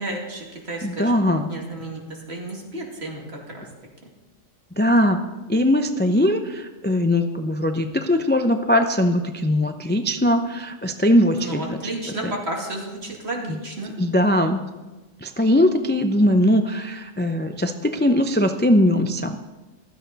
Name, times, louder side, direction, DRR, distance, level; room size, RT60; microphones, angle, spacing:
voice 1, 0.0-3.7 11.4-14.0, right 2 dB, 50° right, -1 dB, 2.8 m, -32 dB
voice 2, 0.8-1.5 4.8-5.2 5.5-11.8 13.5-13.6 14.0-14.6 15.2-19.5, left 1 dB, 20° left, 6 dB, 0.3 m, -20 dB
15.5 x 12.5 x 4.1 m, 1.2 s
omnidirectional pair, 1.4 m